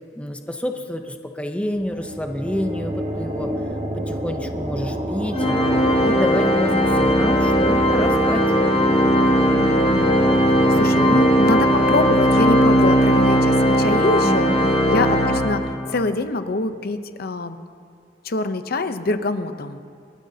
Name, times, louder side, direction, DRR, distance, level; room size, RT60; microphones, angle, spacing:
voice 1, 0.2-3.5 3.9-5.5 6.0-8.5 10.3-11.2 14.2-14.7, left 1 dB, 5° left, 5 dB, 0.7 m, -28 dB
sound 1, 1.7-15.1, right 1 dB, 40° right, 1.5 m, -31 dB
Organ, 5.3-16.0, equal, 35° left, 1.4 m, -18 dB
voice 2, 9.5-10.2 10.8-14.5 14.9-17.6 18.2-19.8, left 2 dB, 55° left, 10 dB, 0.7 m, -25 dB
28.5 x 12.5 x 2.8 m, 2.4 s
head